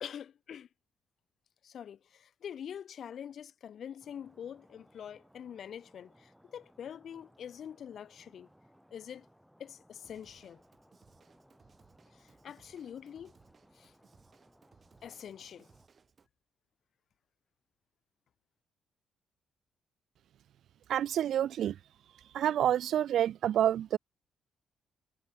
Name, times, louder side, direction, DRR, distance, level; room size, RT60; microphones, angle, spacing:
voice 1, 0.0-0.7 1.6-8.5 8.9-9.3 9.6-10.6 12.1-13.3 13.8-13.9 15.0-15.7, left 8 dB, 60° left, 0.5 m, -45 dB
Stream, 4.0-15.9, equal, ahead, 3.4 m, -64 dB
Drum kit / Drum, 10.0-16.3, right 5 dB, 40° right, 3.0 m, -65 dB
voice 2, 20.9-21.8 22.3-24.0, right 10 dB, 70° right, 0.3 m, -28 dB
cardioid pair, 90°, 0 cm